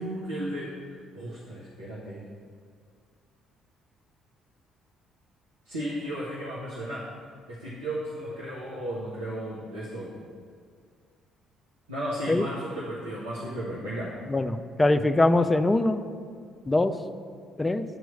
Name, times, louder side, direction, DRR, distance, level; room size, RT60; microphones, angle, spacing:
voice 1, 0.0-2.2 5.6-7.0 7.5-10.2 11.9-14.1, right 1 dB, 75° right, -8 dB, 1.0 m, -34 dB
voice 2, 14.3-16.0 16.7-16.9 17.6-17.8, left 2 dB, 20° left, 9 dB, 0.4 m, -22 dB
9.1 x 3.1 x 6.6 m, 2.1 s
figure-of-eight pair, 45°, 0 cm